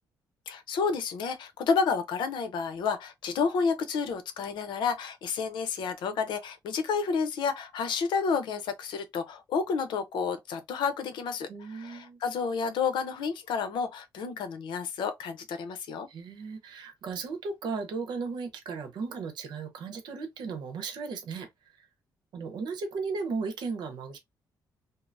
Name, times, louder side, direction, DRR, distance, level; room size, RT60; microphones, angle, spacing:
voice 1, 0.5-16.1, left 5 dB, 80° left, 0.6 m, -30 dB
voice 2, 11.5-12.2 16.1-21.5 21.8-21.9 22.3-24.2, right 4 dB, 70° right, 0.8 m, -36 dB
3.2 x 2.0 x 2.5 m
cardioid pair, 160°, 8 cm